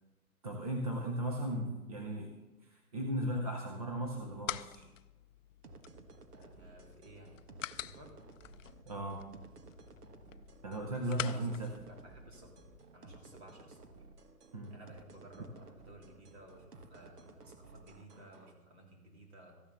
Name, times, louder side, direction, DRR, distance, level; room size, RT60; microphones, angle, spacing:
voice 1, 0.4-4.9 8.9-9.2 10.6-11.8 14.5-14.7, right 1 dB, 25° right, 2 dB, 0.7 m, -37 dB
sound 1, 3.9-12.8, left 11 dB, 60° left, 0.5 m, -47 dB
sound 2, 5.6-18.5, right 3 dB, 80° right, 1.7 m, -56 dB
voice 2, 6.3-7.4 7.7-8.1 11.0-11.5 11.9-12.7 12.9-13.9 14.7-19.6, right 1 dB, 45° right, 2 dB, 3.2 m, -56 dB
14.0 x 7.1 x 6.9 m, 1.1 s
hypercardioid pair, 165°, 45 cm